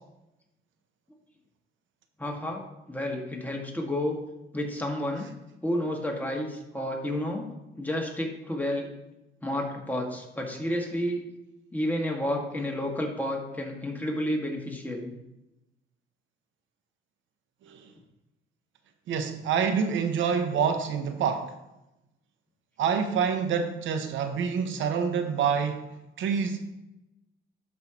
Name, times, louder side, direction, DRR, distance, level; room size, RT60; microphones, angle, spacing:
voice 1, 2.2-2.6 2.9-4.2 4.5-5.3 5.6-7.5 7.8-8.9 9.4-11.2 11.7-15.1, left 1 dB, 10° left, 0 dB, 1.8 m, -30 dB
voice 2, 19.1-21.5 22.8-25.9 26.2-26.7, right 6 dB, 75° right, 8 dB, 0.7 m, -27 dB
11.5 x 5.4 x 3.0 m, 0.93 s
cardioid pair, 90°, 20 cm